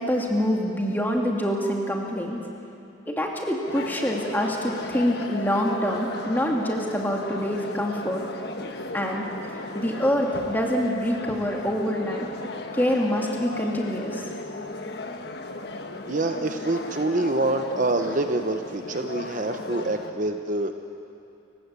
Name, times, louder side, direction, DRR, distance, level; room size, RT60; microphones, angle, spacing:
voice 1, 0.0-2.4 3.1-8.2 8.9-9.3 9.7-12.3 12.7-14.2, equal, 10° left, 0 dB, 2.5 m, -26 dB
sound 1, 3.7-20.1, left 2 dB, 55° left, 1.4 m, -35 dB
voice 2, 16.1-20.9, right 2 dB, 40° right, 6 dB, 0.9 m, -26 dB
29.5 x 16.0 x 8.4 m, 2.7 s
head